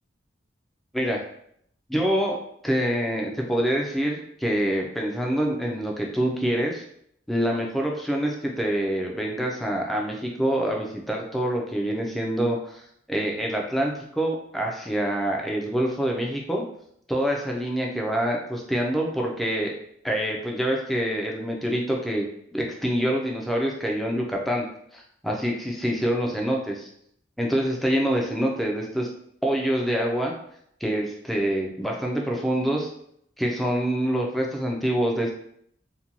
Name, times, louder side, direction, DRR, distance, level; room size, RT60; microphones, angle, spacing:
voice 1, 1.9-6.8 7.3-12.8 13.1-16.6 17.1-19.7 20.0-22.3 22.5-24.7 24.9-26.9 27.4-29.1 29.4-30.3 30.8-32.9 33.4-35.3, equal, ahead, -1 dB, 0.3 m, -26 dB
2.5 x 2.2 x 2.8 m, 0.69 s
head